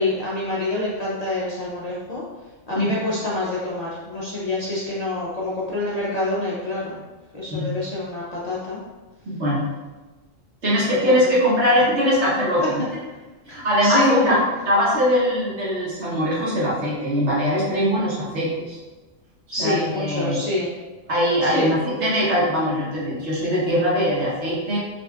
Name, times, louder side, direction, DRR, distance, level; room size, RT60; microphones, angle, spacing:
voice 1, 0.0-2.2 2.7-7.0 7.3-8.8 11.0-11.2 12.6-12.9 13.5-14.4 19.5-20.7 21.4-21.7, left 2 dB, 45° left, -7 dB, 0.5 m, -26 dB
voice 2, 9.2-9.7 10.6-12.8 13.5-14.4 14.7-18.8 19.6-20.4 21.1-24.8, equal, 65° right, -6 dB, 1.3 m, -21 dB
5.4 x 2.5 x 2.3 m, 1.2 s
omnidirectional pair, 1.3 m